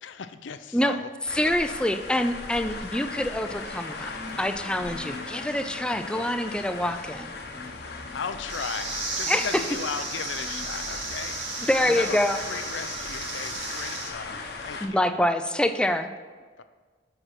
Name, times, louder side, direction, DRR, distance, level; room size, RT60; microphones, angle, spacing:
voice 1, 0.0-1.1 4.9-5.2 7.7-15.1 16.6-16.7, left 6 dB, 85° left, 11 dB, 0.5 m, -37 dB
sound 1, 1.3-14.9, left 3 dB, 60° left, 0.9 m, -38 dB
voice 2, 1.3-7.3 9.3-9.5 11.6-12.4 14.8-16.1, left 1 dB, 5° left, 9 dB, 0.4 m, -26 dB
sound 2, 3.9-5.3 7.3-8.3 8.6-8.7 10.1-12.4, left 3 dB, 40° right, 1.6 m, -47 dB
sound 3, 8.5-14.1, right 3 dB, 80° right, 1.8 m, -34 dB
8.0 x 6.1 x 5.8 m, 1.5 s
head